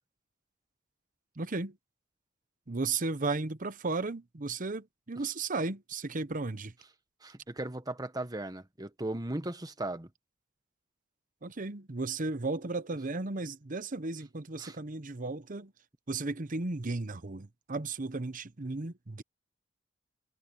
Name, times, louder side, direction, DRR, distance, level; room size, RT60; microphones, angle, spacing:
voice 1, 1.4-1.8 2.7-6.7 11.4-15.7 16.1-19.2, right 3 dB, 40° right, 0.9 m, -35 dB
voice 2, 7.2-10.1 14.6-14.8, right 1 dB, 20° right, 1.3 m, -37 dB
head